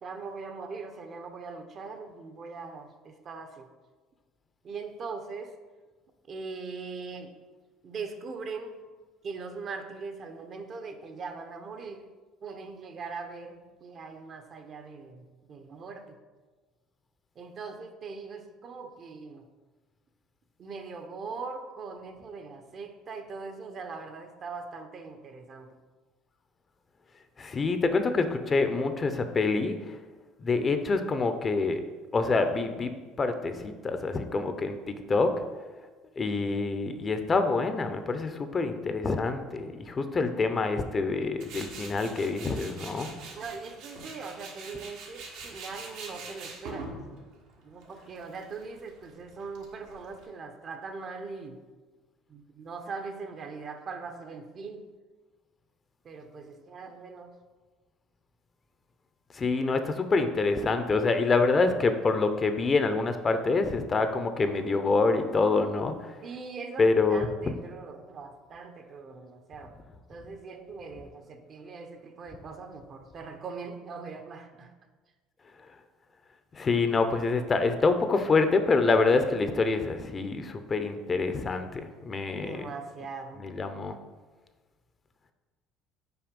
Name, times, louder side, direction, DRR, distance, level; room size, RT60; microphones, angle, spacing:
voice 1, 0.0-3.7 4.6-5.5 6.3-7.3 7.8-8.8 9.2-12.0 12.4-16.2 17.4-19.4 20.6-25.7 43.3-46.9 47.6-51.6 52.3-54.8 56.0-57.3 66.2-69.7 70.1-74.7 82.3-83.4, right 4 dB, 45° right, 7 dB, 0.9 m, -41 dB
voice 2, 27.4-30.0 30.4-31.8 32.1-32.9 33.2-35.3 36.2-43.1 59.3-66.1 66.8-67.5 76.5-82.7 83.4-83.9, left 3 dB, 30° left, 8 dB, 0.7 m, -26 dB
Tools, 41.4-50.2, right 3 dB, 75° right, 1.5 m, -44 dB
5.9 x 4.6 x 5.3 m, 1.3 s
supercardioid pair, 95°, 0 cm